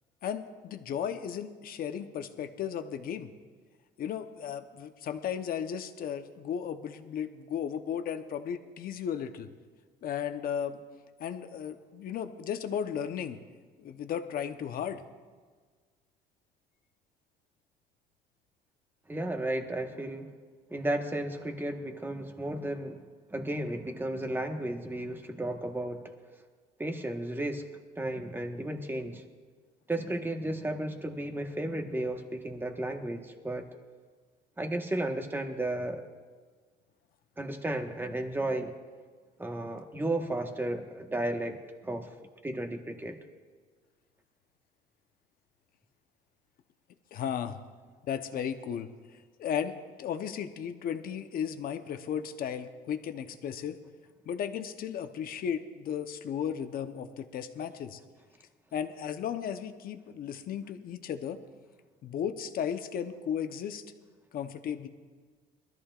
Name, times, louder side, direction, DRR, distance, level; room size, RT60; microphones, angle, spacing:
voice 1, 0.2-3.3 4.0-9.5 10.0-10.8 11.2-13.4 13.8-15.0 47.1-47.6 48.0-53.8 54.2-58.0 58.7-61.4 62.0-63.8 64.3-64.9, left 8 dB, 60° left, 8 dB, 0.9 m, -35 dB
voice 2, 19.1-20.3 20.7-23.0 23.3-26.1 26.8-27.7 28.0-29.2 29.9-33.7 34.6-36.0 37.4-38.7 39.4-42.1 42.4-43.2, right 1 dB, 10° right, 4 dB, 1.3 m, -33 dB
21.5 x 13.5 x 2.5 m, 1.5 s
cardioid pair, 110°, 17 cm